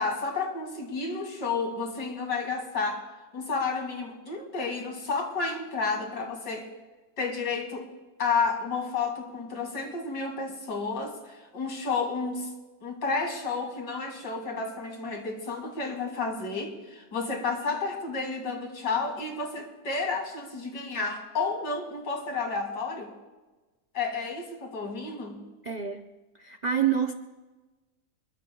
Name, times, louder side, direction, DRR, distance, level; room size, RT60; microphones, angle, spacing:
voice 1, 0.0-3.0 3.3-6.7 7.2-7.9 8.2-12.5 12.8-23.1 23.9-25.4, left 4 dB, 80° left, 2 dB, 2.9 m, -31 dB
voice 2, 25.6-26.1 26.4-27.1, right 8 dB, 75° right, 6 dB, 0.4 m, -27 dB
27.0 x 22.0 x 2.3 m, 1.2 s
omnidirectional pair, 1.8 m